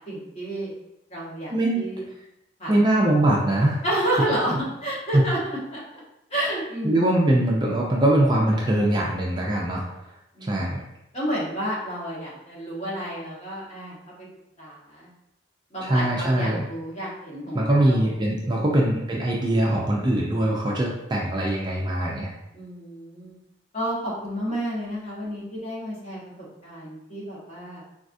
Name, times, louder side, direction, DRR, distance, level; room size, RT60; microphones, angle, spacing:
voice 1, 0.1-0.7 1.1-2.0 2.6-2.8 3.8-5.4 5.7-6.0 6.3-7.1 10.3-10.7 11.1-14.3 14.6-15.1 15.7-18.1 22.5-23.3 23.7-27.8, right 1 dB, 35° left, -7 dB, 1.1 m, -31 dB
voice 2, 1.5-1.8 2.7-3.8 5.1-5.2 6.8-9.8 10.4-10.8 15.8-16.6 17.5-22.3, right 1 dB, 25° right, -2 dB, 0.4 m, -22 dB
4.0 x 2.4 x 2.5 m, 0.87 s
head